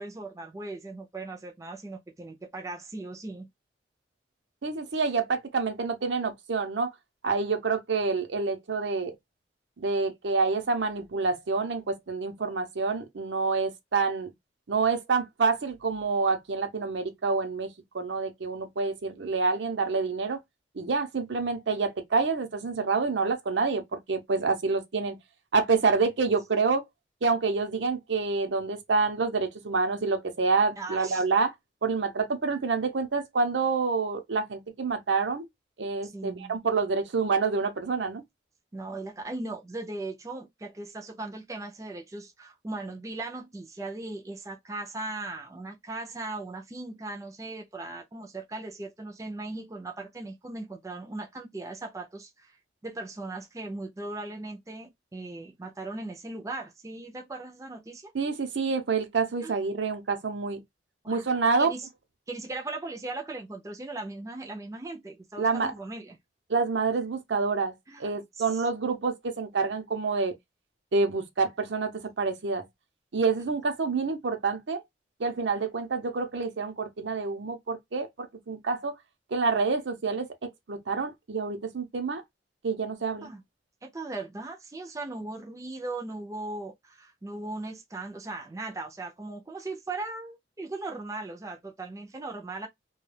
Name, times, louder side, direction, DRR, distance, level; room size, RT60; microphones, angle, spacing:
voice 1, 0.0-3.5 30.8-31.2 36.0-36.6 38.7-52.6 52.8-58.1 59.4-59.5 61.0-61.3 61.6-61.9 62.3-66.2 67.9-68.6 83.2-83.4 83.8-92.7, right 2 dB, 20° right, 0.4 m, -38 dB
voice 2, 4.6-6.9 7.2-9.1 9.8-14.3 14.7-17.7 17.9-20.4 20.8-25.2 25.5-26.8 27.2-31.5 31.8-35.4 35.8-38.2 58.1-60.6 61.1-61.7 65.4-65.7 66.5-67.7 68.0-70.3 70.9-72.6 73.1-74.8 75.2-79.0 79.3-80.3 80.7-82.2 82.6-83.3, right 4 dB, 85° right, 0.6 m, -27 dB
2.2 x 2.2 x 3.2 m
head